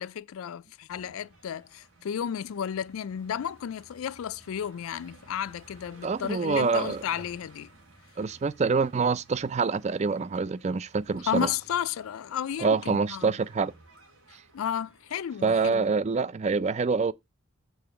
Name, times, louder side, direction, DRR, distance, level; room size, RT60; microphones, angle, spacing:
voice 1, 0.0-7.7 11.3-13.4 14.5-15.9, left 9 dB, 80° left, 0.3 m, -33 dB
sound 1, 0.9-15.5, right 2 dB, 70° right, 3.7 m, -56 dB
voice 2, 6.0-7.0 8.2-11.5 12.6-13.7 15.4-17.1, right 4 dB, 30° right, 0.3 m, -26 dB
7.1 x 3.8 x 5.6 m
head